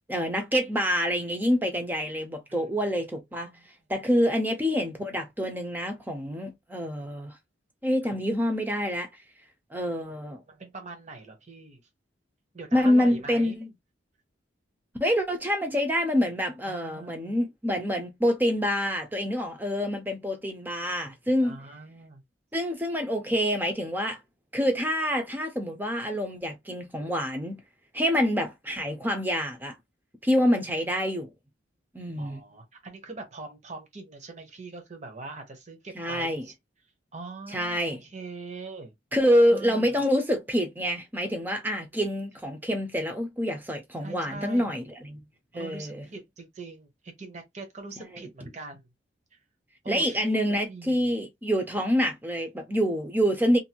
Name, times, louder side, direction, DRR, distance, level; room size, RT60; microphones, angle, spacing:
voice 1, 0.1-3.5 3.9-7.4 7.8-9.1 9.7-10.4 12.7-13.7 15.0-21.6 22.5-24.2 24.5-27.6 27.9-29.8 30.2-31.3 31.9-32.4 35.9-36.5 37.5-38.0 39.1-45.2 45.5-46.1 48.4-48.5 49.9-53.6, equal, 10° right, 0.6 m, -26 dB
voice 2, 10.5-11.8 12.5-13.6 16.6-17.4 21.4-22.2 32.2-36.5 37.1-38.9 39.5-40.0 44.0-44.7 45.5-48.9 49.3-49.4 49.8-50.4 50.7-51.1, right 3 dB, 40° right, 0.9 m, -42 dB
2.6 x 2.6 x 2.8 m
head